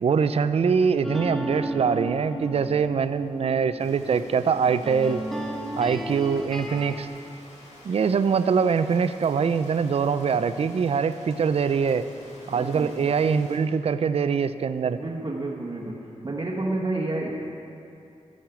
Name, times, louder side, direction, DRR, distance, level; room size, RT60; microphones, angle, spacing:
voice 1, 0.0-5.2 5.8-7.1 7.8-12.1 12.5-15.0, right 6 dB, 55° right, 12 dB, 0.4 m, -23 dB
sound 1, 1.0-7.1, right 1 dB, ahead, 1.1 m, -34 dB
Rain, 3.8-13.6, left 1 dB, 65° left, 2.4 m, -50 dB
voice 2, 12.5-12.9 14.9-17.3, right 2 dB, 35° right, -5 dB, 1.3 m, -30 dB
14.5 x 6.5 x 7.0 m, 2.6 s
wide cardioid pair, 110°, 12 cm